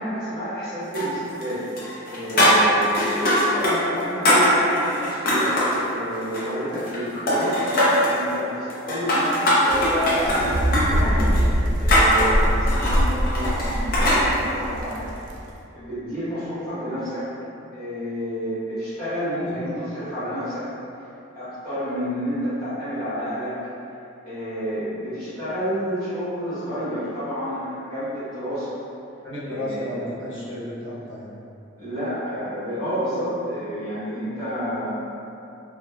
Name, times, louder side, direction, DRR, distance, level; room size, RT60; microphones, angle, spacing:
voice 1, 0.0-1.6 2.1-11.3 11.8-15.1 15.7-17.3 17.7-20.7 21.3-23.5 24.2-28.8 29.4-29.8 31.8-34.9, equal, 15° left, -22 dB, 1.4 m, -29 dB
sound 1, 0.9-1.5 1.8-3.7 4.0-5.8 6.2-7.0 7.3-8.1 8.7-14.2, equal, 50° left, 0.5 m, -21 dB
sound 2, 9.7-15.4, equal, 45° right, 0.3 m, -23 dB
voice 2, 29.2-31.3, left 1 dB, 80° left, -10 dB, 0.9 m, -33 dB
3.2 x 2.1 x 2.2 m, 2.7 s
head